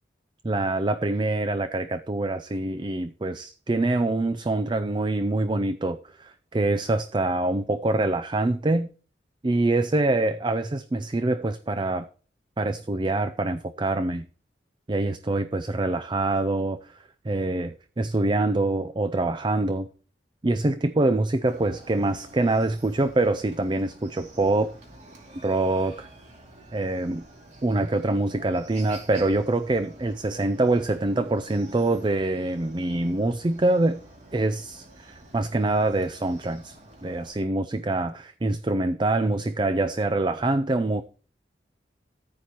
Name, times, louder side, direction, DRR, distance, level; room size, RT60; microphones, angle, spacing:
voice 1, 0.4-8.9 9.4-12.1 12.6-14.3 14.9-17.0 17.2-19.9 20.4-24.7 25.4-26.1 26.7-27.2 27.6-34.0 34.3-41.0, right 2 dB, 25° right, 0.5 m, -25 dB
Chicken rooster, 21.4-37.3, right 1 dB, 40° right, 2.6 m, -49 dB
14.5 x 9.5 x 3.0 m
head